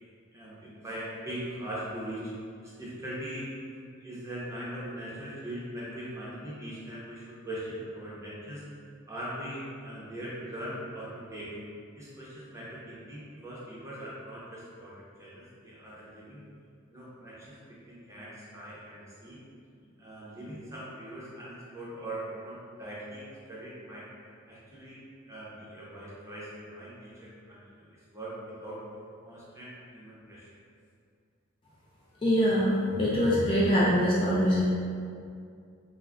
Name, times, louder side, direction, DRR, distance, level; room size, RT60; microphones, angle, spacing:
voice 1, 0.3-2.3 2.6-3.5 4.0-8.6 9.1-11.5 12.0-16.4 16.9-17.6 17.9-19.4 19.8-24.1 24.5-25.0 25.3-28.8 29.2-30.5, right 1 dB, 15° right, -8 dB, 0.6 m, -41 dB
voice 2, 32.2-34.6, equal, 25° left, -7 dB, 0.3 m, -24 dB
2.3 x 2.1 x 3.4 m, 2.3 s
head